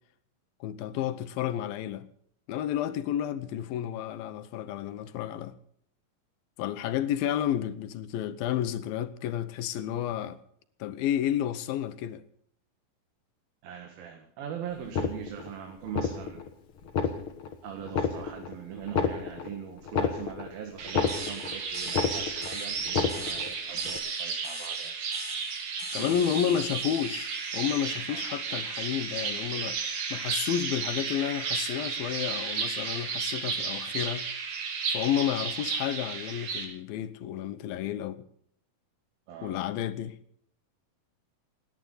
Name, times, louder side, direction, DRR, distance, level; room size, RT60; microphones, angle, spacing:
voice 1, 0.6-2.1 2.5-5.5 6.6-10.4 10.8-12.2 25.9-34.3 34.9-38.2 39.4-40.2, left 10 dB, 80° left, 2.7 m, -31 dB
voice 2, 13.6-16.4 17.6-25.0 25.9-26.6 28.1-28.2 39.3-39.6, right 8 dB, 80° right, 3.6 m, -41 dB
sound 1, 14.8-15.5 15.9-16.5 16.8-17.5 17.9-18.5 18.8-21.6 21.9-22.5 22.8-23.5 23.9-24.0, left 6 dB, 50° left, 1.6 m, -30 dB
sound 2, 20.8-36.6, right 5 dB, 60° right, 3.7 m, -33 dB
sound 3, 21.1-28.2, left 3 dB, 20° left, 4.5 m, -47 dB
29.0 x 10.5 x 4.0 m
omnidirectional pair, 4.2 m